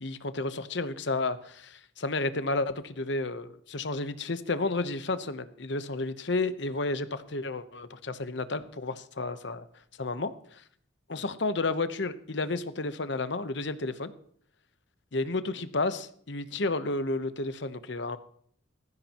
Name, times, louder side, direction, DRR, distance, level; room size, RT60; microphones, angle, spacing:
voice 1, 0.0-9.7 10.0-10.6 11.1-14.1 15.1-18.2, left 3 dB, 60° left, 12 dB, 1.0 m, -31 dB
18.5 x 15.0 x 3.0 m, 0.63 s
head